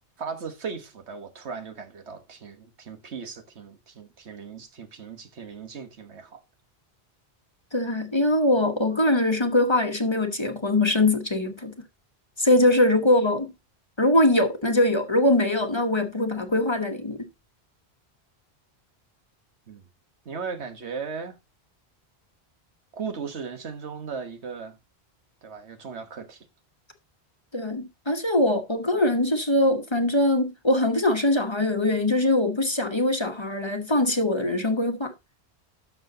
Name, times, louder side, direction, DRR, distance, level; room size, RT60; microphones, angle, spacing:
voice 1, 0.2-6.4 19.7-19.8 20.2-21.4 22.9-24.8 25.4-26.4, right 5 dB, 85° right, 1.6 m, -37 dB
voice 2, 7.7-11.7 12.4-13.5 14.0-17.2 27.5-35.1, left 1 dB, 25° left, 1.1 m, -22 dB
12.0 x 6.1 x 2.8 m
omnidirectional pair, 1.1 m